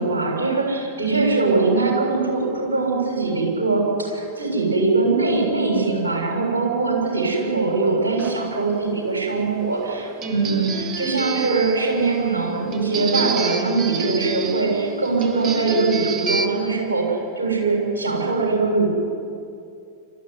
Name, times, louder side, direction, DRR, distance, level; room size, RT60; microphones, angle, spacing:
voice 1, 0.0-18.9, right 3 dB, 70° right, 0 dB, 7.1 m, -22 dB
sound 1, 8.2-16.5, right 5 dB, 35° right, 1.6 m, -29 dB
27.5 x 14.0 x 9.8 m, 2.5 s
figure-of-eight pair, 90°, 0 cm